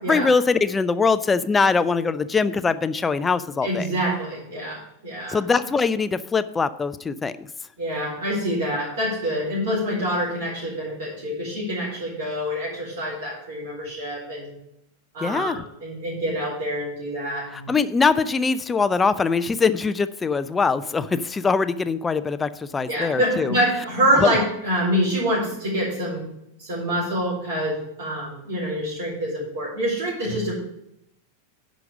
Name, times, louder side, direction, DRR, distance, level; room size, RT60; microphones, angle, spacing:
voice 1, 0.1-3.9 5.3-7.5 15.2-15.7 17.5-23.6 24.2-24.3, left 4 dB, 15° left, 13 dB, 0.5 m, -22 dB
voice 2, 3.6-5.4 7.8-14.5 15.1-17.7 22.9-26.2 26.6-30.5, equal, 55° right, -5 dB, 4.4 m, -26 dB
10.5 x 5.1 x 7.0 m, 0.80 s
figure-of-eight pair, 90°, 0 cm